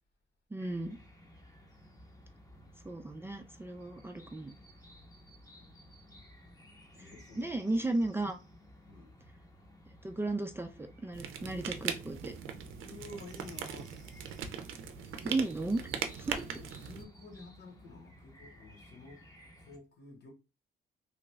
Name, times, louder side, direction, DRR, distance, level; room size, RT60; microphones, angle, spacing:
voice 1, 0.5-1.0 2.8-4.5 7.4-8.4 10.0-12.3 15.2-15.9 16.2-16.4, right 2 dB, 10° right, 0.4 m, -34 dB
sound 1, 0.6-19.8, equal, 20° left, 0.8 m, -56 dB
voice 2, 6.9-7.8 8.9-9.2 12.8-14.0 16.4-19.3 19.6-20.3, left 2 dB, 60° left, 1.4 m, -51 dB
sound 2, 11.1-17.0, right 8 dB, 90° right, 0.5 m, -40 dB
3.1 x 2.5 x 3.1 m
cardioid pair, 90°, 20 cm